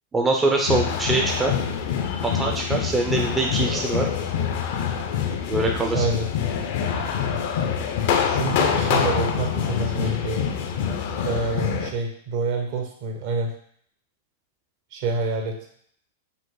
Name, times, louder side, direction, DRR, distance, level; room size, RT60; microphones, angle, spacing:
voice 1, 0.1-1.5 2.2-4.1 5.5-6.1, right 3 dB, 15° right, 1 dB, 0.5 m, -23 dB
sound 1, 0.7-11.9, left 7 dB, 60° left, 0.6 m, -25 dB
voice 2, 5.9-6.3 8.3-10.5 11.2-13.5 14.9-15.6, right 3 dB, 55° right, 3 dB, 1.0 m, -27 dB
5.4 x 2.0 x 3.9 m, 0.63 s
hypercardioid pair, 125°, 0 cm